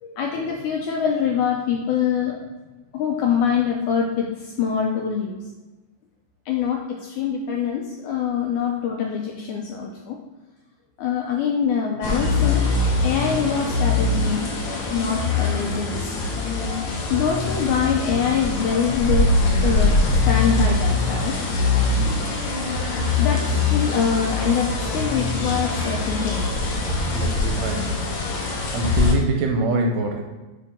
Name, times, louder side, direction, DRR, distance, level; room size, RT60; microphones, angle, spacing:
voice 1, 0.0-2.4 2.9-5.4 6.5-10.2 11.0-14.5 14.9-16.0 17.1-19.3 19.6-21.4 23.2-26.6, left 7 dB, 85° left, 0 dB, 1.8 m, -24 dB
sound 1, 12.0-29.1, left 3 dB, 65° left, 2.1 m, -23 dB
voice 2, 27.1-27.9 28.7-30.3, right 3 dB, 80° right, 2 dB, 2.0 m, -24 dB
8.7 x 3.8 x 3.6 m, 1.2 s
omnidirectional pair, 4.1 m